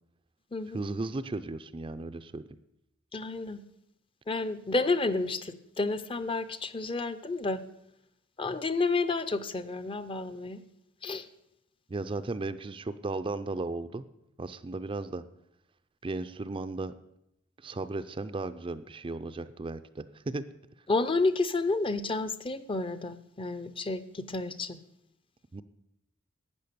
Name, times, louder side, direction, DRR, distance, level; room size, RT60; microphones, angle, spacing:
voice 1, 0.7-2.4 11.9-14.0 14.4-15.2 16.0-16.9 17.6-20.4 25.5-25.6, right 3 dB, 25° right, 11 dB, 0.4 m, -35 dB
voice 2, 3.1-3.6 4.3-7.6 8.4-10.6 11.0-11.2 20.9-24.8, left 3 dB, 25° left, 12 dB, 0.6 m, -30 dB
12.5 x 8.5 x 6.8 m, 0.81 s
head